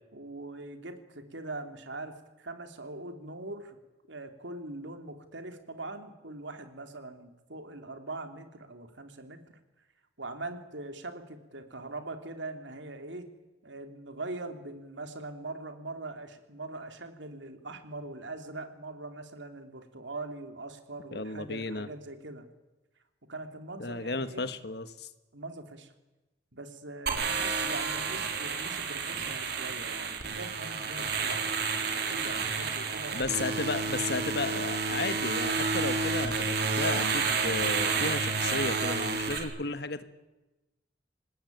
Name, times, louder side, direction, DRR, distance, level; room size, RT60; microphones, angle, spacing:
voice 1, 0.1-3.8 4.1-9.4 10.2-13.3 13.6-22.5 23.3-24.5 25.3-25.9 26.5-31.5 31.8-33.2, right 2 dB, 80° right, 7 dB, 3.0 m, -42 dB
voice 2, 21.1-21.9 23.8-25.1 33.1-40.0, left 3 dB, 60° left, 12 dB, 1.5 m, -34 dB
sound 1, 27.1-39.4, right 4 dB, 60° right, 4.2 m, -30 dB
26.5 x 19.5 x 9.4 m, 1.1 s
head